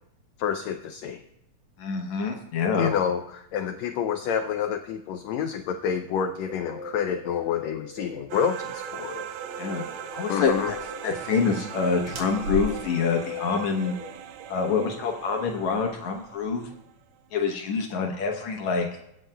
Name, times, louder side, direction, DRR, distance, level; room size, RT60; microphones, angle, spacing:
voice 1, 0.4-1.2 2.8-9.2 10.3-10.7, left 7 dB, 85° left, 6 dB, 1.5 m, -28 dB
voice 2, 1.8-2.9 9.6-9.8 10.1-10.7 11.0-13.9 14.5-16.7 17.3-18.9, left 5 dB, 70° left, 2 dB, 2.1 m, -26 dB
sound 1, 6.1-14.8, left 6 dB, 5° right, 4.4 m, -41 dB
sound 2, 8.3-16.9, right 10 dB, 75° right, 1.8 m, -40 dB
sound 3, 10.5-16.6, equal, 55° right, 2.2 m, -39 dB
23.0 x 8.7 x 2.2 m, 0.79 s
omnidirectional pair, 3.7 m